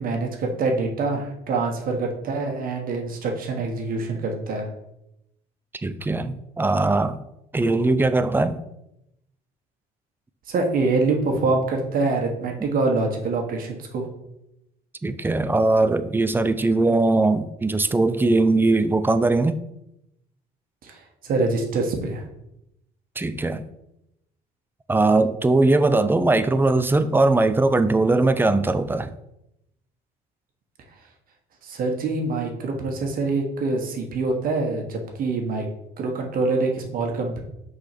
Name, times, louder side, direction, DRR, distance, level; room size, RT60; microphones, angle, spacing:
voice 1, 0.0-4.7 10.5-14.1 20.8-22.3 31.6-35.7 36.0-37.4, right 3 dB, 55° right, 2 dB, 1.4 m, -25 dB
voice 2, 5.8-7.2 7.5-8.6 15.0-19.6 23.2-23.7 24.9-29.1, right 2 dB, 10° right, 12 dB, 0.5 m, -20 dB
5.9 x 4.1 x 5.9 m, 0.84 s
cardioid pair, 110°, 17 cm